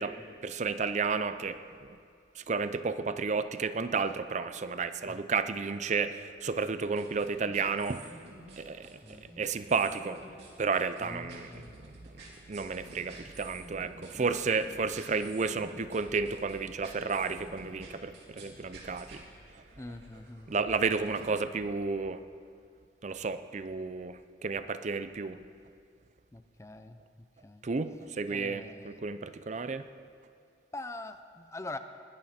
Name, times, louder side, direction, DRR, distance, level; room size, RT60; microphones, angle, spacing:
voice 1, 0.4-2.0 2.4-8.0 8.6-8.9 9.4-10.2 10.6-11.5 12.5-19.2 20.5-22.2 23.0-25.4 27.6-29.8, right 4 dB, 40° right, 11 dB, 0.5 m, -32 dB
sound 1, 7.0-21.4, right 2 dB, 65° right, 3.2 m, -51 dB
voice 2, 11.0-12.0 14.1-14.4 19.8-20.5 26.3-27.7 28.3-29.0 30.7-31.8, left 2 dB, 15° left, 10 dB, 0.5 m, -44 dB
20.5 x 12.0 x 4.3 m, 2.2 s
head